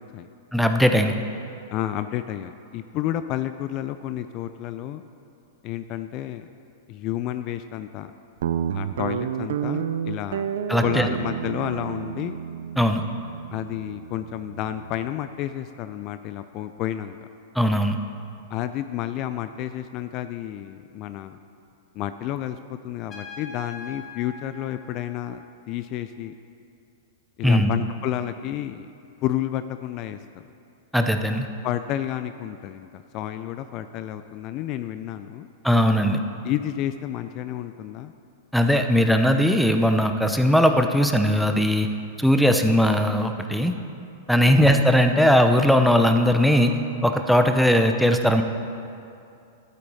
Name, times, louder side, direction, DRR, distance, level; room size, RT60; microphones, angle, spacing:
voice 1, 0.5-1.1 10.7-11.1 12.8-13.0 17.6-17.9 27.4-27.7 30.9-31.5 35.6-36.2 38.5-41.9 42.2-43.7 44.3-46.7 47.0-48.4, equal, ahead, 5 dB, 0.7 m, -19 dB
voice 2, 1.7-5.0 5.6-6.5 6.9-8.1 8.7-10.5 10.8-12.4 13.5-17.2 18.5-21.4 21.9-26.3 27.4-28.9 29.2-30.4 31.6-35.5 36.4-38.1 44.4-44.6, left 12 dB, 40° left, 10 dB, 0.4 m, -31 dB
Guitar, 8.4-15.1, right 8 dB, 70° right, 0.4 m, -30 dB
Trumpet, 23.1-25.7, left 3 dB, 25° left, 1.5 m, -43 dB
12.0 x 8.3 x 4.1 m, 2.5 s
hypercardioid pair, 110°, 0 cm